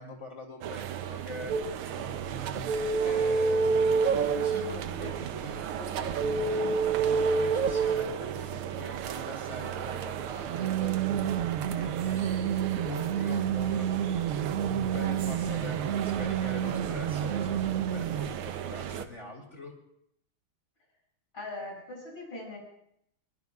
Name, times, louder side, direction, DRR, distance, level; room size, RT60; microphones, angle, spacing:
voice 1, 0.0-1.6 2.0-3.8 4.4-11.0 11.8-14.3 14.7-19.7, left 2 dB, 35° left, 0 dB, 3.0 m, -43 dB
sound 1, 0.6-19.1, right 10 dB, 90° right, 1.7 m, -36 dB
sound 2, 1.5-1.7 2.5-4.7 6.0-8.1 10.5-18.3, right 6 dB, 60° right, 0.9 m, -28 dB
voice 2, 21.3-22.6, left 2 dB, 70° left, -3 dB, 8.0 m, -40 dB
22.5 x 21.5 x 2.4 m, 0.73 s
omnidirectional pair, 2.3 m